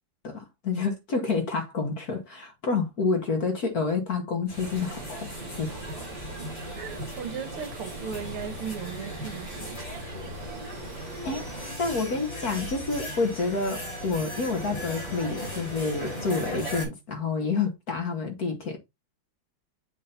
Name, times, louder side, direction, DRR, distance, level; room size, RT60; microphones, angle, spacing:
voice 1, 0.2-5.3 5.6-5.8 11.2-11.4 11.8-18.8, left 4 dB, 50° left, 1.4 m, -28 dB
sound 1, 4.5-16.8, left 1 dB, 75° left, 4.8 m, -37 dB
Stream, 4.6-11.8, right 4 dB, 40° right, 1.5 m, -42 dB
voice 2, 6.7-9.8, right 7 dB, 75° right, 2.1 m, -37 dB
7.7 x 2.7 x 5.6 m
omnidirectional pair, 2.4 m